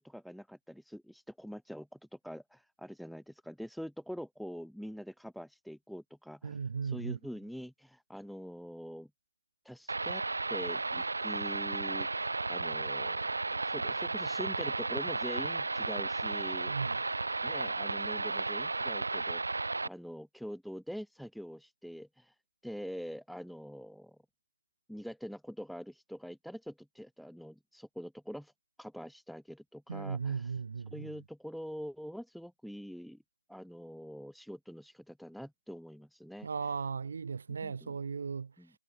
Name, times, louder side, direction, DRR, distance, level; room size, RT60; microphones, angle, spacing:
voice 1, 0.0-9.1 9.6-10.2 10.5-13.2 13.5-17.0 17.4-22.4 22.6-24.2 24.9-28.5 28.8-30.5 30.9-33.2 33.5-36.5 37.6-37.9 38.6-38.7, equal, ahead, 0.4 m, -44 dB
voice 2, 6.4-7.2 16.7-17.0 29.9-31.1 36.4-38.5, right 5 dB, 35° right, 2.1 m, -36 dB
sound 1, 9.9-19.9, right 3 dB, 65° right, 1.3 m, -34 dB
figure-of-eight pair, 170°, 0 cm